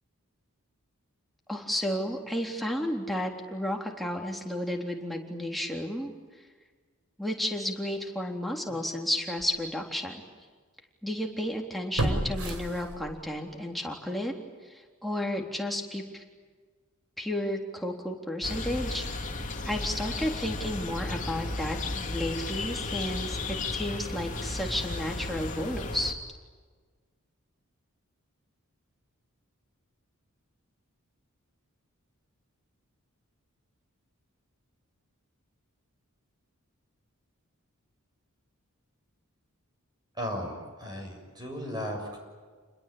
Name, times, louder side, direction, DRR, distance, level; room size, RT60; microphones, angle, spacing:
voice 1, 1.5-6.1 7.2-10.2 11.0-14.3 14.6-16.2 17.2-19.0 19.6-26.1, left 1 dB, ahead, 0 dB, 3.7 m, -32 dB
sound 1, 8.7-8.8 9.4-9.5 12.0-13.4 13.8-13.9, right 1 dB, 70° right, 4.6 m, -31 dB
sound 2, 18.4-26.1, left 2 dB, 35° left, 2.7 m, -34 dB
voice 2, 40.1-42.2, equal, 20° right, 2 dB, 6.9 m, -36 dB
30.0 x 21.0 x 8.7 m, 1.5 s
head